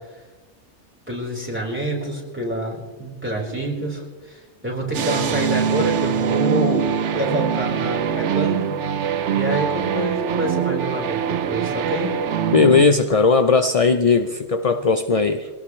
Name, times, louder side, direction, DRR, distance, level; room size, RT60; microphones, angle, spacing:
voice 1, 1.1-6.9 7.1-8.8 9.3-12.2, right 1 dB, 10° right, -2 dB, 4.3 m, -27 dB
sound 1, 4.9-12.8, right 8 dB, 80° right, 1.1 m, -23 dB
voice 2, 12.5-15.5, left 4 dB, 35° left, 8 dB, 0.6 m, -17 dB
24.5 x 18.0 x 3.2 m, 1.3 s
omnidirectional pair, 1.2 m